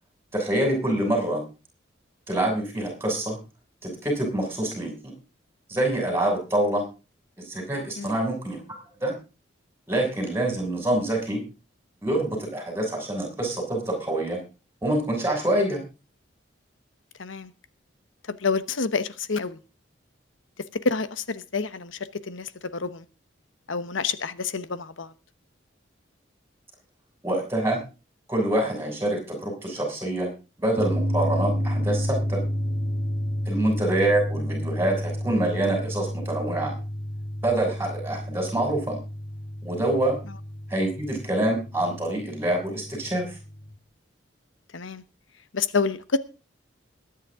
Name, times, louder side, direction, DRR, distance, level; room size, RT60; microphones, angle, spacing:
voice 1, 0.3-1.4 2.3-3.4 3.8-5.1 5.7-6.8 7.4-8.6 9.0-9.1 9.9-11.4 12.0-14.4 14.8-15.8 27.2-27.8 28.3-30.3 30.6-32.4 33.5-36.7 37.4-39.0 39.6-40.1 40.7-43.2, right 1 dB, 15° right, 6.5 m, -26 dB
voice 2, 17.2-17.5 18.4-19.6 20.7-23.0 23.7-25.1 33.5-33.7 44.7-45.0 45.5-46.2, left 4 dB, 90° left, 1.1 m, -28 dB
sound 1, 30.8-43.7, equal, 30° left, 6.6 m, -30 dB
21.5 x 9.9 x 3.7 m
head